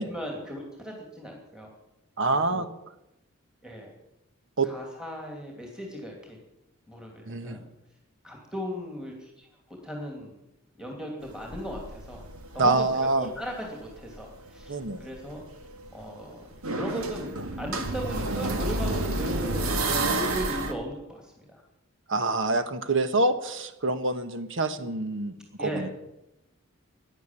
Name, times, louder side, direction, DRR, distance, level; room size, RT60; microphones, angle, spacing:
voice 1, 0.1-1.7 2.2-2.7 3.6-3.9 4.6-6.4 6.9-7.6 8.2-10.3 10.8-12.2 12.5-15.4 15.9-16.4 16.7-21.6 25.6-25.9, equal, 5° right, 0 dB, 2.8 m, -37 dB
voice 2, 2.2-2.7 4.6-4.7 7.3-7.6 12.6-13.3 14.7-15.0 22.1-25.9, right 2 dB, 60° right, 10 dB, 1.3 m, -26 dB
sound 1, 11.2-13.4 13.8-20.7, right 2 dB, 80° right, 1.9 m, -30 dB
16.5 x 10.5 x 7.5 m, 0.88 s
head